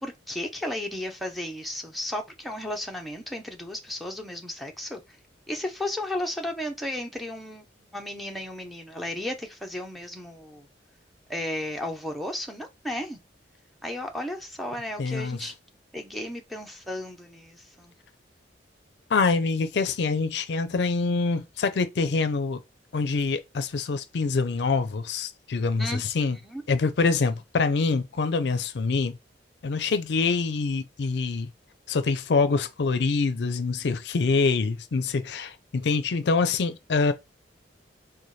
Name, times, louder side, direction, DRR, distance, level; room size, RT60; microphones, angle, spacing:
voice 1, 0.0-5.0 5.5-7.6 7.9-10.7 11.3-13.2 13.8-15.5 15.9-17.9 25.8-26.0 26.4-26.6, left 1 dB, ahead, 0.6 m, -34 dB
voice 2, 15.0-15.5 19.1-22.6 22.9-26.4 26.7-29.2 29.6-31.5 31.9-37.1, left 4 dB, 65° left, 0.4 m, -25 dB
4.1 x 2.2 x 3.1 m
head